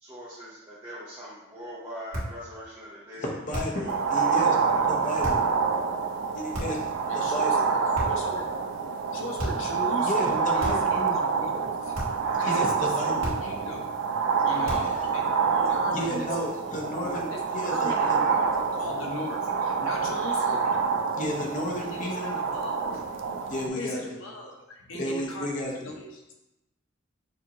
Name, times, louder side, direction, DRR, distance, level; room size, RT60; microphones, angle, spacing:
voice 1, 0.0-3.3 3.8-4.4, equal, 20° right, -9 dB, 0.9 m, -42 dB
sound 1, 2.1-2.4 3.5-3.9 5.2-5.5 6.5-6.9 7.9-8.3 9.4-9.7 10.6-11.0 11.9-12.3 13.2-13.6 14.6-15.0, equal, 85° right, 1.6 m, -34 dB
voice 2, 3.2-4.6 4.9-5.5 6.3-7.7 10.0-10.8 12.4-13.3 15.9-18.2 20.6-20.7 21.2-22.4 23.5-24.2 24.9-25.9, left 1 dB, 40° left, -1 dB, 0.8 m, -33 dB
sound 2, 3.9-23.7, right 5 dB, 60° right, 0.4 m, -27 dB
voice 3, 6.5-8.6 9.1-12.0 12.4-13.9 14.5-16.3 16.7-20.7 21.8-25.5 25.8-26.3, left 1 dB, 70° left, 0 dB, 0.9 m, -38 dB
6.3 x 2.8 x 2.9 m, 0.95 s
head